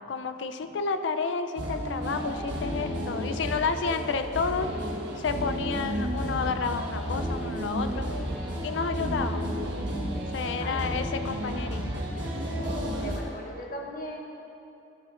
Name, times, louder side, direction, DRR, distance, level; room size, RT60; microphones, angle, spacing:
voice 1, 0.1-4.7 5.2-8.1 8.6-9.6 10.3-12.1, left 5 dB, 85° left, 9 dB, 0.4 m, -30 dB
sound 1, 1.6-13.2, equal, 85° right, 1.2 m, -32 dB
voice 2, 9.8-10.1 10.6-11.1 13.0-14.2, equal, 50° left, 0 dB, 0.9 m, -39 dB
11.0 x 8.0 x 2.5 m, 2.7 s
head